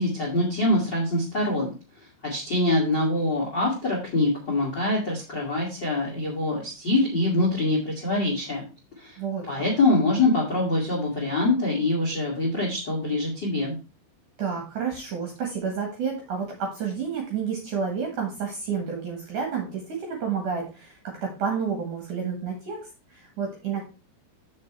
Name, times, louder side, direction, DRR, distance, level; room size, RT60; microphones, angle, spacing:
voice 1, 0.0-1.7 2.2-8.6 9.0-9.2 9.5-13.8, left 2 dB, 35° left, -1 dB, 1.8 m, -24 dB
voice 2, 9.2-9.7 14.4-22.8 23.1-23.8, right 6 dB, 60° right, 1 dB, 2.3 m, -30 dB
7.5 x 6.6 x 4.5 m, 0.32 s
omnidirectional pair, 5.6 m